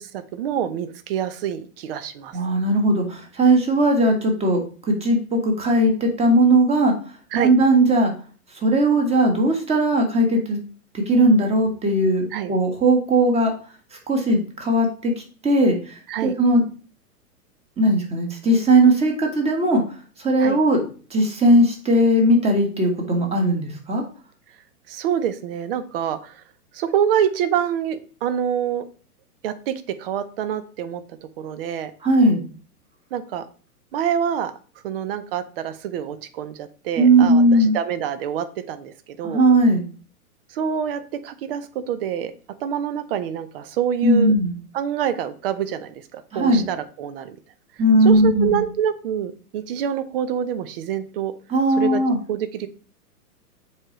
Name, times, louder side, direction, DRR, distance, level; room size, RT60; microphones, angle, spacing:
voice 1, 0.1-2.4 7.3-7.5 12.3-12.5 16.1-16.3 20.4-20.6 24.9-26.4 26.7-28.9 29.4-31.0 31.4-31.9 33.1-33.4 33.9-34.5 34.8-39.4 40.5-42.3 42.6-44.3 44.7-47.4 48.0-51.3 51.8-52.0 52.3-52.7, right 9 dB, 40° right, 12 dB, 0.7 m, -26 dB
voice 2, 2.3-4.6 5.0-6.9 7.3-8.1 8.6-10.6 10.9-13.5 14.1-15.1 15.4-16.6 17.8-19.8 20.2-20.8 21.1-24.0 32.0-32.4 37.0-37.8 39.2-39.8 44.0-44.5 46.3-46.6 47.8-48.6 51.5-52.2, right 1 dB, 15° right, 2 dB, 1.5 m, -18 dB
7.4 x 4.8 x 3.1 m, 0.39 s
figure-of-eight pair, 115°, 46 cm